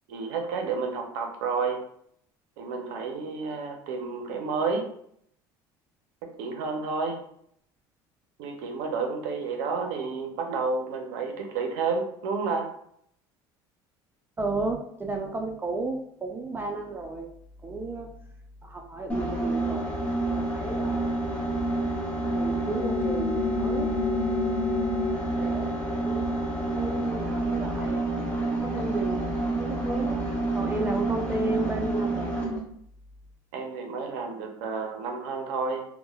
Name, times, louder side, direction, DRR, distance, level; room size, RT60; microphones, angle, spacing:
voice 1, 0.1-1.8 2.6-4.9 6.4-7.2 8.4-12.7 33.5-35.8, right 4 dB, 80° right, 3 dB, 0.5 m, -30 dB
voice 2, 14.4-17.3 17.6-18.1 18.6-21.2 22.3-23.9 25.4-26.3 26.7-28.0 28.6-29.3 29.6-32.3, right 2 dB, 20° right, 2 dB, 0.4 m, -33 dB
sound 1, 19.1-32.6, right 1 dB, 10° left, 1.0 m, -28 dB
2.9 x 2.1 x 2.2 m, 0.68 s
supercardioid pair, 90°, 12 cm